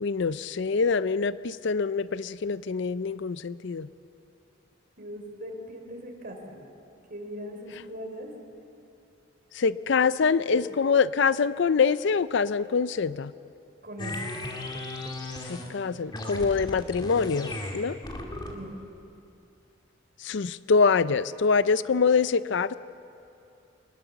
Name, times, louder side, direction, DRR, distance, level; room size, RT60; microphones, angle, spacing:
voice 1, 0.0-3.9 9.6-13.3 15.5-18.0 20.2-22.8, left 5 dB, 65° left, 16 dB, 0.5 m, -25 dB
voice 2, 5.0-6.6 7.1-8.3 10.5-10.6 13.8-14.4 18.5-18.7, equal, 45° right, 3 dB, 3.6 m, -39 dB
sound 1, 14.0-15.8 16.1-18.7, left 1 dB, 20° left, 2.0 m, -36 dB
23.0 x 20.5 x 7.1 m, 2.7 s
head